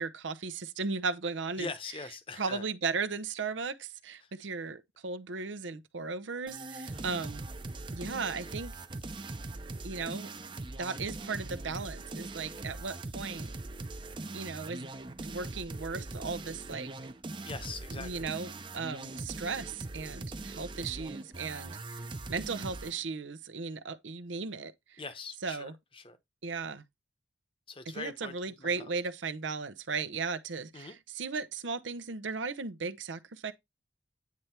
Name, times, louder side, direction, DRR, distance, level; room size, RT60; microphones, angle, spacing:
voice 1, 0.0-1.7 2.4-7.4 7.9-8.7 9.8-10.3 10.8-13.5 14.3-14.9 15.2-16.9 18.0-25.0 25.4-25.7 26.4-26.8 28.0-33.5, right 4 dB, 85° right, 0.8 m, -36 dB
voice 2, 1.6-2.6 4.2-4.3 6.9-7.2 17.4-18.3 20.3-20.4 25.0-26.2 27.7-28.3 28.6-28.9 30.7-31.0, left 4 dB, 30° left, 0.9 m, -42 dB
sound 1, 6.5-23.0, right 2 dB, 25° right, 0.6 m, -41 dB
9.4 x 3.3 x 4.3 m
head